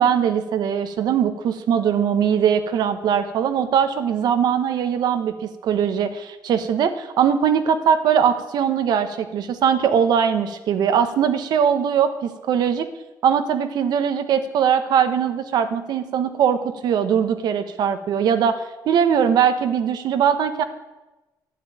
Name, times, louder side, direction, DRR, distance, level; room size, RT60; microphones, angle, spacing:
voice 1, 0.0-12.9 13.2-20.6, right 8 dB, 65° right, 10 dB, 1.2 m, -21 dB
11.5 x 9.4 x 9.0 m, 1.1 s
cardioid pair, 170°, 8 cm